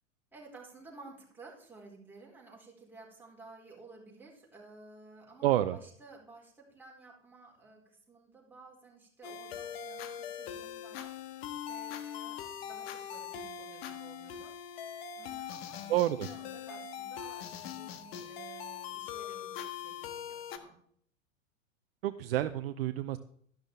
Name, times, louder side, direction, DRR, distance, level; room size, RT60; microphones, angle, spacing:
voice 1, 0.3-14.5 15.2-20.8, right 3 dB, 5° right, -4 dB, 4.5 m, -54 dB
voice 2, 5.4-5.8 15.9-16.3 22.0-23.2, right 13 dB, 50° right, 11 dB, 0.7 m, -29 dB
sound 1, 9.2-20.6, left 9 dB, 50° left, 1.4 m, -42 dB
13.0 x 11.5 x 3.5 m, 0.63 s
figure-of-eight pair, 95°, 39 cm